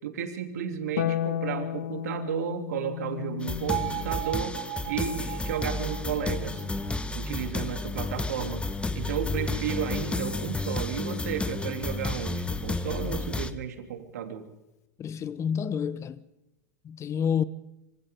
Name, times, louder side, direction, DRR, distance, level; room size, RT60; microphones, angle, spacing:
voice 1, 0.0-4.6 4.8-6.6 7.1-8.7 8.9-14.4, right 8 dB, 75° right, 3.1 m, -33 dB
Harp, 1.0-7.5 9.1-10.1, left 10 dB, 75° left, 0.8 m, -36 dB
sound 1, 3.4-13.5, left 3 dB, 10° left, 1.5 m, -32 dB
Bell, 3.7-7.8, right 23 dB, 60° right, 0.9 m, -37 dB
voice 2, 15.0-16.3 16.8-17.4, left 7 dB, 35° left, 1.1 m, -29 dB
26.5 x 26.0 x 3.8 m
hypercardioid pair, 95°, 9 cm